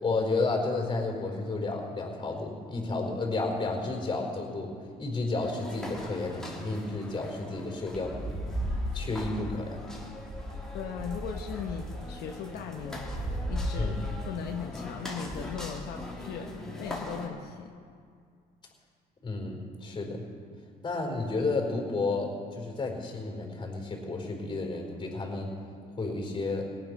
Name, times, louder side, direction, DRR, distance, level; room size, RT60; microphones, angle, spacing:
voice 1, 0.0-4.7 5.0-8.3 8.9-9.8 13.8-14.0 19.2-20.3 20.8-25.5 25.9-26.6, left 3 dB, 25° left, 1 dB, 4.4 m, -31 dB
sound 1, 5.4-17.3, equal, 5° left, 2.8 m, -37 dB
voice 2, 10.7-13.1 13.5-16.5 16.8-17.8, left 7 dB, 75° left, 2 dB, 1.0 m, -38 dB
18.0 x 9.9 x 6.1 m, 2.2 s
cardioid pair, 110°, 17 cm